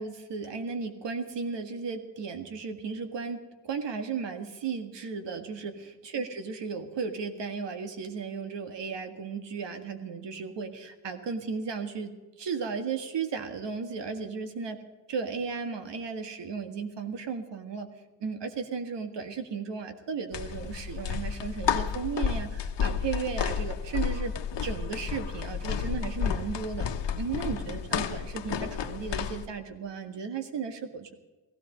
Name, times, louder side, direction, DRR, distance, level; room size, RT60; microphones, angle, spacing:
voice 1, 0.0-12.1 12.4-14.8 15.1-17.9 18.2-24.3 24.6-26.9 27.2-31.1, right 5 dB, 85° right, 7 dB, 1.8 m, -35 dB
sound 1, 20.3-29.4, left 7 dB, 90° left, 1.2 m, -31 dB
16.5 x 16.0 x 5.1 m, 1.2 s
wide cardioid pair, 175°, 42 cm